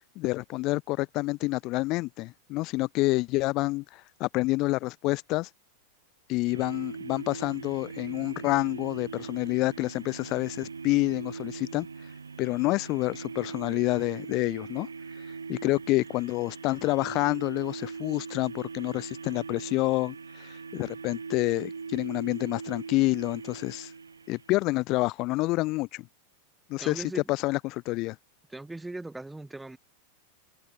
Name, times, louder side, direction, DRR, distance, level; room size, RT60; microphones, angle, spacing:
voice 1, 0.2-5.5 6.3-11.9 12.4-14.9 15.5-23.9 24.3-26.1 26.7-28.2, left 21 dB, 40° left, 0.6 m, -28 dB
sound 1, 6.5-24.7, right 5 dB, 75° right, 0.3 m, -41 dB
voice 2, 26.8-27.2 28.5-29.8, right 2 dB, 5° right, 0.5 m, -39 dB
figure-of-eight pair, 90°, 0 cm